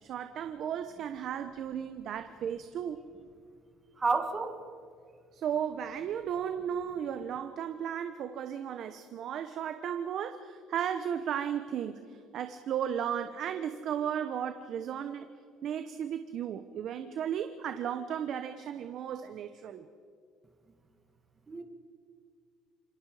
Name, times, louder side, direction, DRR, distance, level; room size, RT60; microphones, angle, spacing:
voice 1, 0.0-3.0 5.3-15.3 15.6-19.9, right 9 dB, 55° right, 9 dB, 1.0 m, -35 dB
voice 2, 4.0-4.5 21.5-21.6, right 4 dB, 20° right, 5 dB, 1.9 m, -29 dB
27.0 x 22.5 x 5.0 m, 2.2 s
cardioid pair, 130°, 0 cm